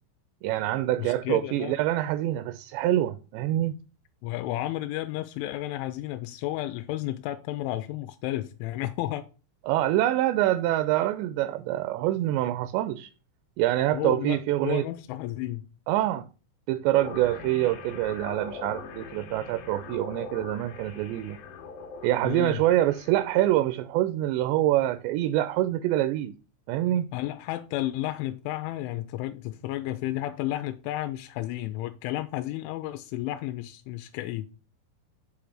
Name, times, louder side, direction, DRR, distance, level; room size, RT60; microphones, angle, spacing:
voice 1, 0.4-3.8 9.7-13.1 13.6-14.9 15.9-16.3 16.7-21.4 22.0-26.3 26.7-27.1, right 14 dB, 85° right, 2.5 m, -25 dB
voice 2, 1.0-1.8 4.2-9.3 13.9-15.7 22.2-22.6 27.1-34.5, left 15 dB, 90° left, 3.0 m, -32 dB
sound 1, 17.0-23.5, left 5 dB, 70° left, 2.3 m, -42 dB
7.9 x 3.4 x 6.4 m
omnidirectional pair, 5.3 m